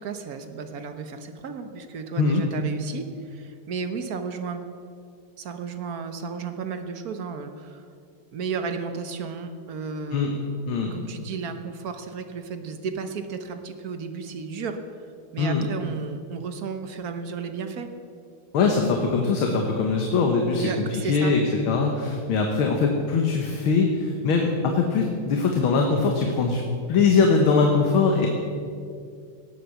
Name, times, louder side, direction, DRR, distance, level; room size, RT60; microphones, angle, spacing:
voice 1, 0.0-4.6 5.4-7.9 8.3-10.5 10.9-14.8 15.3-17.9 20.5-21.3, right 5 dB, 50° right, 7 dB, 1.3 m, -33 dB
voice 2, 18.5-28.3, left 4 dB, 75° left, 2 dB, 2.0 m, -22 dB
18.0 x 8.2 x 7.1 m, 2.3 s
omnidirectional pair, 2.3 m